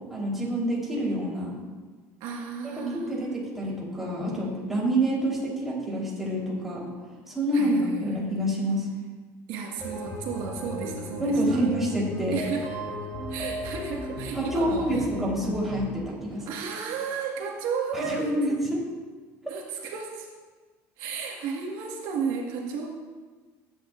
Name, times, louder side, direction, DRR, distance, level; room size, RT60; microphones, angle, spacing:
voice 1, 0.1-1.6 3.1-6.9 7.3-8.9 11.2-12.4 14.3-16.5 17.9-18.8, right 1 dB, 5° right, -5 dB, 3.7 m, -27 dB
voice 2, 2.2-3.2 7.5-8.2 9.5-11.6 12.3-12.9 13.3-15.1 16.5-18.6 19.5-20.3 21.0-22.9, right 5 dB, 75° right, 0 dB, 1.6 m, -33 dB
sound 1, 9.8-16.0, equal, 15° left, 3.6 m, -36 dB
18.0 x 9.0 x 2.5 m, 1.4 s
cardioid pair, 125°, 7 cm